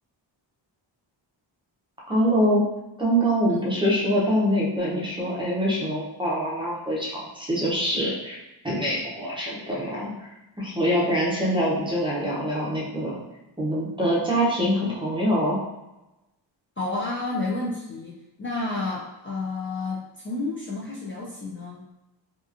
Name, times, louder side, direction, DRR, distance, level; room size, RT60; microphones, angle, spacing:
voice 1, 2.1-2.6 3.0-8.4 8.6-10.3 10.6-13.2 13.6-15.6, equal, 10° right, -6 dB, 0.6 m, -24 dB
voice 2, 16.8-21.8, left 2 dB, 30° left, -5 dB, 0.4 m, -31 dB
2.8 x 2.4 x 2.4 m, 0.96 s
wide cardioid pair, 145°, 45 cm